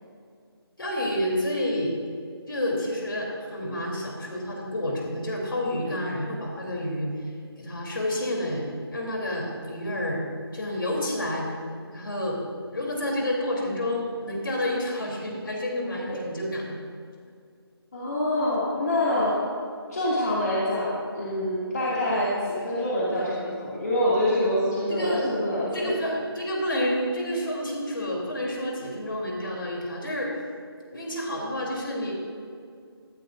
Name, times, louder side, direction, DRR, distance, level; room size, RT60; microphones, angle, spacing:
voice 1, 0.8-1.9 2.5-7.1 7.6-8.6 8.9-10.2 10.5-11.4 11.9-12.4 12.7-16.8 24.9-25.3 25.7-30.3 30.9-32.1, left 1 dB, 55° left, -1 dB, 3.4 m, -29 dB
voice 2, 15.9-16.2 17.9-19.3 19.9-25.9, left 1 dB, 40° left, -8 dB, 2.4 m, -26 dB
16.0 x 14.0 x 2.6 m, 2.3 s
figure-of-eight pair, 175°, 13 cm